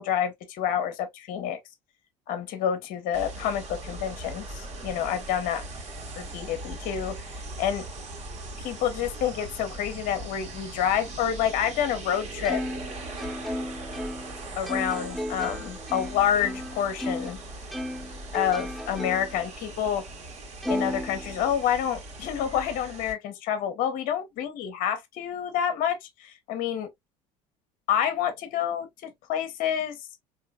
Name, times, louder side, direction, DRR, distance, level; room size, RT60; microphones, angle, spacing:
voice 1, 0.0-1.6 2.3-5.6 6.2-7.8 8.6-12.6 14.6-17.4 18.3-20.0 20.7-26.9 27.9-30.0, left 9 dB, 60° left, 0.9 m, -28 dB
sound 1, 3.1-23.1, right 2 dB, 45° right, 1.6 m, -40 dB
Plucked string instrument, 12.4-17.4 17.7-19.4 19.9-20.0 20.6-21.8, left 1 dB, ahead, 0.5 m, -34 dB
3.7 x 2.8 x 2.2 m
hypercardioid pair, 70°, 17 cm